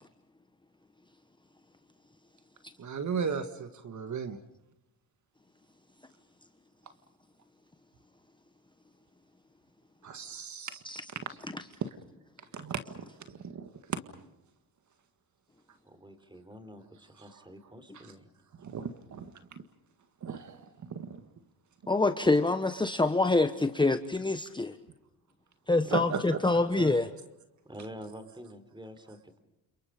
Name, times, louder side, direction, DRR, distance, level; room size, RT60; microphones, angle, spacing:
voice 1, 2.8-4.4 10.0-10.8 12.5-14.0 18.0-18.1 18.6-19.6 20.2-21.2 25.9-26.4 26.7-26.9, right 6 dB, 45° right, 8 dB, 1.8 m, -36 dB
voice 2, 15.8-18.3 25.8-26.1 27.6-29.4, equal, 10° right, 10 dB, 4.1 m, -47 dB
voice 3, 21.9-24.8 25.7-27.1, left 2 dB, 10° left, 9 dB, 1.2 m, -26 dB
30.0 x 28.0 x 5.2 m, 0.87 s
cardioid pair, 90°, 39 cm